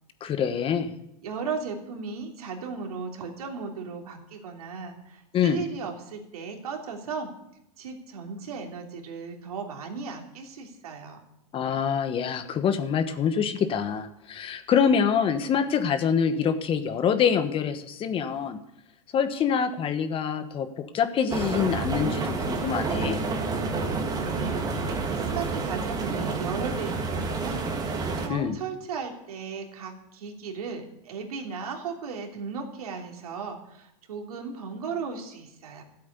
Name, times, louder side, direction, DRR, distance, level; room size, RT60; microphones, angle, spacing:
voice 1, 0.2-0.9 5.3-5.6 11.5-18.6 19.1-23.2 28.3-28.6, left 7 dB, 30° left, 10 dB, 1.3 m, -25 dB
voice 2, 1.2-7.3 7.8-11.2 24.1-24.7 25.2-27.7 28.2-35.8, right 5 dB, 85° right, 2 dB, 3.1 m, -36 dB
sound 1, 21.3-28.3, right 4 dB, 20° right, 2.2 m, -29 dB
14.0 x 8.5 x 8.3 m, 0.82 s
hypercardioid pair, 125°, 19 cm